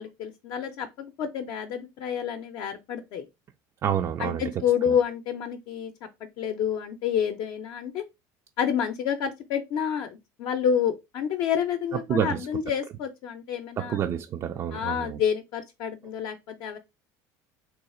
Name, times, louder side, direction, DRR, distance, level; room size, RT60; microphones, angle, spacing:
voice 1, 0.0-3.3 4.2-6.1 6.4-8.0 8.6-14.0 14.7-16.8, left 8 dB, 60° left, 0.6 m, -29 dB
voice 2, 3.8-4.5 4.8-5.0 12.1-12.5 13.8-15.2, right 9 dB, 35° right, 0.3 m, -28 dB
3.8 x 2.4 x 4.1 m
cardioid pair, 130°, 9 cm